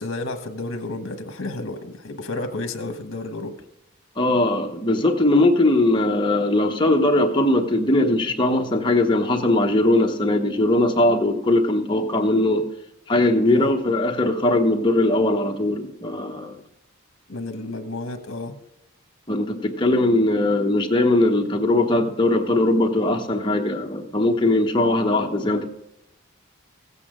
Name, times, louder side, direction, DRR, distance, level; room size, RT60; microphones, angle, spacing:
voice 1, 0.0-3.6 13.5-13.7 17.3-18.5 25.0-25.4, left 2 dB, 60° left, 6 dB, 1.2 m, -31 dB
voice 2, 4.2-12.6 13.1-16.6 19.3-25.7, left 1 dB, 20° left, 2 dB, 1.0 m, -20 dB
15.5 x 8.4 x 3.7 m, 0.83 s
head